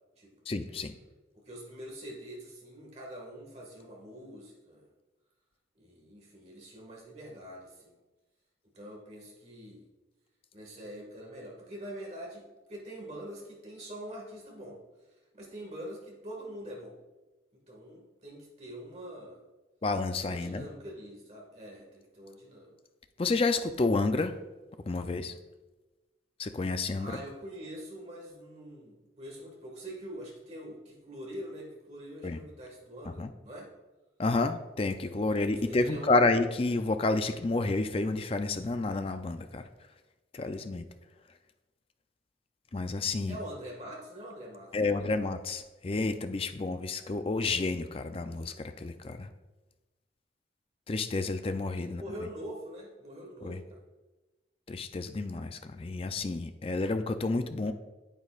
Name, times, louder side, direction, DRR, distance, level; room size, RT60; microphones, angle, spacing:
voice 1, 0.5-1.0 19.8-20.7 23.2-24.3 24.9-25.3 26.4-27.2 32.2-32.4 33.2-33.3 34.2-39.7 40.3-40.9 42.7-43.4 44.7-49.3 50.9-52.0 53.4-53.6 54.7-57.7, left 3 dB, 30° left, 9 dB, 0.4 m, -30 dB
voice 2, 1.4-4.9 5.8-8.0 8.7-9.9 10.5-14.8 15.3-17.0 17.5-19.4 20.2-22.7 27.0-33.7 35.5-36.2 43.3-45.1 51.8-53.8, equal, 35° right, -1 dB, 1.8 m, -44 dB
8.9 x 8.5 x 2.4 m, 1.1 s
head